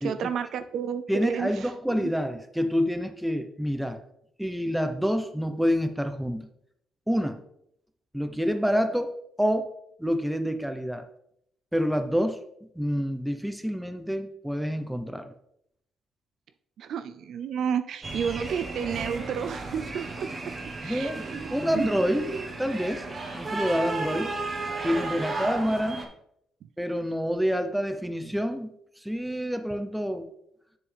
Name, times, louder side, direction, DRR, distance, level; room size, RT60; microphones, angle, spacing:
voice 1, 0.0-2.1 16.8-20.5 20.8-22.5, right 7 dB, 70° right, 10 dB, 0.4 m, -32 dB
voice 2, 1.1-4.0 4.4-6.5 7.1-7.4 8.1-9.1 9.4-9.7 10.0-11.0 11.7-12.4 12.7-15.3 20.8-22.3 22.6-23.1 23.3-24.3 24.8-26.0 26.8-28.7 29.0-30.3, equal, 5° right, 7 dB, 0.8 m, -27 dB
sound 1, 18.0-26.0, right 3 dB, 35° right, 1.3 m, -34 dB
7.0 x 6.9 x 3.4 m, 0.74 s
cardioid pair, 90°, 0 cm